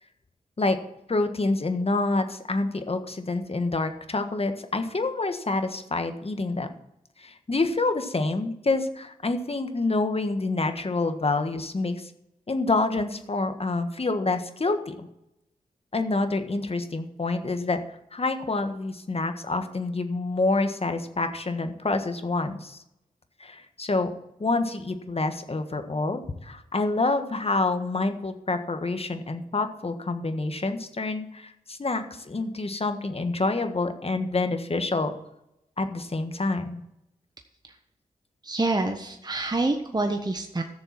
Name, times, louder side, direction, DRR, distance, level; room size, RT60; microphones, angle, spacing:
voice 1, 1.1-6.7 7.2-12.1 12.5-15.1 15.9-17.8 18.1-22.8 23.4-24.1 24.4-35.1 35.8-36.8, left 3 dB, 40° left, 8 dB, 1.5 m, -27 dB
voice 2, 38.4-40.6, right 2 dB, 25° right, 5 dB, 1.3 m, -27 dB
12.5 x 6.8 x 6.0 m, 0.84 s
cardioid pair, 45°, 15 cm